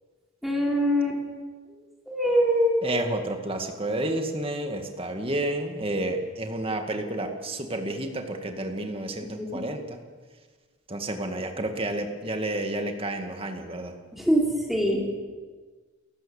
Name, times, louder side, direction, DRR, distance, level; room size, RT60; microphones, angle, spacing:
voice 1, 0.4-1.2 2.1-2.8 9.2-9.6 14.1-15.2, equal, ahead, -2 dB, 4.7 m, -24 dB
voice 2, 2.8-10.0 10.9-13.9, right 1 dB, 30° right, 4 dB, 2.1 m, -30 dB
30.0 x 15.0 x 7.3 m, 1.4 s
head